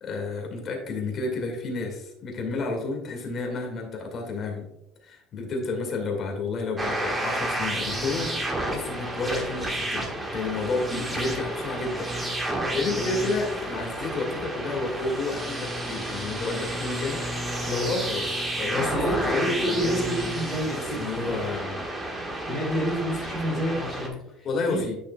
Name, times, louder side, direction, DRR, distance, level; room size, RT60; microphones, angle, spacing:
voice 1, 0.0-4.7 5.0-20.2 20.7-21.8 24.4-25.0, left 3 dB, 35° left, 1 dB, 1.9 m, -31 dB
sound 1, 6.8-24.1, right 1 dB, 15° right, 1.4 m, -31 dB
voice 2, 18.7-21.4 22.4-24.8, equal, ahead, -8 dB, 2.4 m, -29 dB
9.9 x 6.3 x 2.3 m, 0.83 s
cardioid pair, 145°, 0 cm